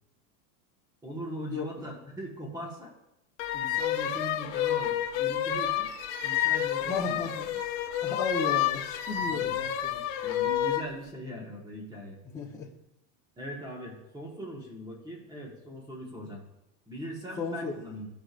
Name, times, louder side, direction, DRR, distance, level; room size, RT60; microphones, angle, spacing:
voice 1, 1.0-2.9 3.5-5.9 6.2-7.2 7.5-7.6 9.2-9.6 10.2-12.2 13.4-16.4 16.9-18.1, equal, 10° right, -1 dB, 1.5 m, -40 dB
sound 1, 3.4-10.9, left 11 dB, 55° left, 0.9 m, -29 dB
voice 2, 6.8-7.4 8.0-10.0 12.2-12.7 17.4-17.8, left 4 dB, 10° left, -4 dB, 1.0 m, -34 dB
14.5 x 5.0 x 2.5 m, 0.87 s
supercardioid pair, 165°, 40 cm